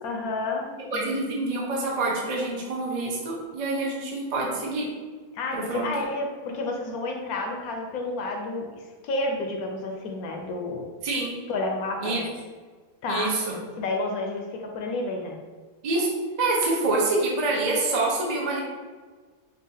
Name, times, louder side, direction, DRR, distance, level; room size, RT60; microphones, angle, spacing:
voice 1, 0.0-1.2 5.3-8.6 9.0-10.8 11.5-12.3 13.0-13.3 13.8-15.4, left 2 dB, 70° left, 2 dB, 1.0 m, -30 dB
voice 2, 0.9-4.8 5.5-6.1 11.0-11.3 12.0-12.2 13.1-13.5 15.8-16.1 16.4-18.6, right 2 dB, 45° right, -3 dB, 0.5 m, -26 dB
5.5 x 2.5 x 2.7 m, 1.5 s
omnidirectional pair, 1.7 m